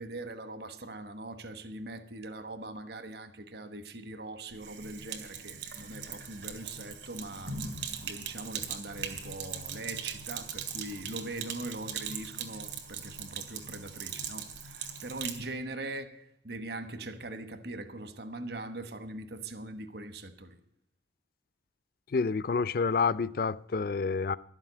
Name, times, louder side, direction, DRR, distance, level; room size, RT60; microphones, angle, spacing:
voice 1, 0.0-7.6 8.0-20.6, right 2 dB, 60° right, 1.2 m, -41 dB
Sink (filling or washing), 4.5-15.4, right 7 dB, 75° right, 2.2 m, -40 dB
voice 2, 22.1-24.4, left 5 dB, 50° left, 0.4 m, -28 dB
12.0 x 7.5 x 9.7 m
head